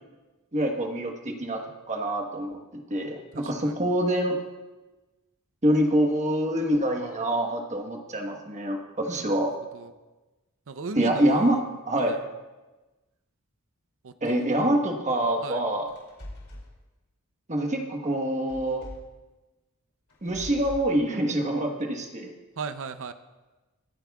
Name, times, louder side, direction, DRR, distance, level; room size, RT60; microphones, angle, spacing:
voice 1, 0.5-4.4 5.6-9.5 10.9-12.2 14.2-15.9 17.5-18.8 20.2-22.3, right 1 dB, 35° right, 3 dB, 1.3 m, -26 dB
voice 2, 3.3-3.8 9.2-9.3 9.7-9.9 10.7-11.6 12.0-12.2 14.0-14.6 15.4-15.6 22.6-23.1, right 4 dB, 65° right, 11 dB, 0.6 m, -37 dB
sound 1, 15.9-16.7 18.5-19.2 20.1-20.9, left 1 dB, 70° left, 2.9 m, -42 dB
23.5 x 8.8 x 2.3 m, 1.2 s
head